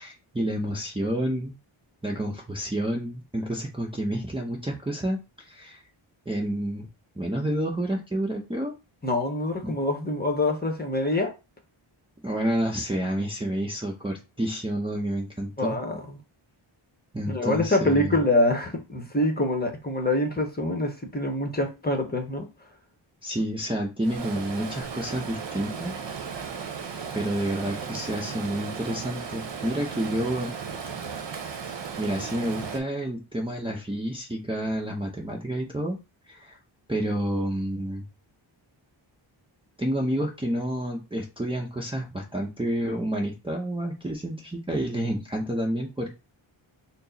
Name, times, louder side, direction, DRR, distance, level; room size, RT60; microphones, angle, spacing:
voice 1, 0.0-1.6 2.0-5.2 5.5-5.8 6.3-6.9 7.2-8.7 9.6-9.8 12.2-15.8 17.1-18.2 23.2-25.9 27.1-30.5 32.0-36.0 36.3-36.6 36.9-38.1 39.8-46.1, right 1 dB, 10° right, 0.7 m, -29 dB
voice 2, 9.0-11.3 15.6-16.0 17.3-22.5, left 1 dB, 20° left, 0.9 m, -25 dB
Stream, 24.0-32.8, right 6 dB, 60° right, 0.8 m, -36 dB
4.4 x 2.0 x 3.9 m
wide cardioid pair, 90°, 48 cm